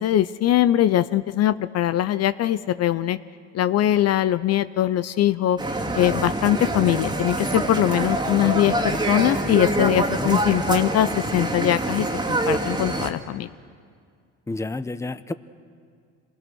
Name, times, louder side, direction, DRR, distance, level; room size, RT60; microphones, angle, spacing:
voice 1, 0.0-3.2 3.5-5.6 5.9-13.5, left 12 dB, 50° left, 14 dB, 0.6 m, -21 dB
sound 1, 5.6-13.1, right 2 dB, 15° right, 2.3 m, -25 dB
voice 2, 14.5-15.3, left 2 dB, 10° left, 13 dB, 0.8 m, -30 dB
26.5 x 20.5 x 6.3 m, 2.1 s
supercardioid pair, 85°, 31 cm